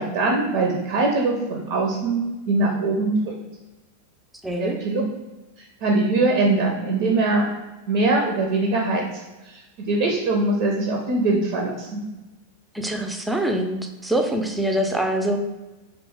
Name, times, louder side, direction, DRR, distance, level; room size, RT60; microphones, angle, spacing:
voice 1, 0.0-2.2 2.5-3.3 4.6-5.0 5.8-7.5 7.9-9.0 9.5-12.0, right 2 dB, 50° right, 0 dB, 0.6 m, -22 dB
voice 2, 4.4-4.8 12.7-15.4, right 1 dB, 5° right, 3 dB, 0.5 m, -24 dB
3.1 x 3.0 x 3.5 m, 1.1 s
figure-of-eight pair, 90°, 0 cm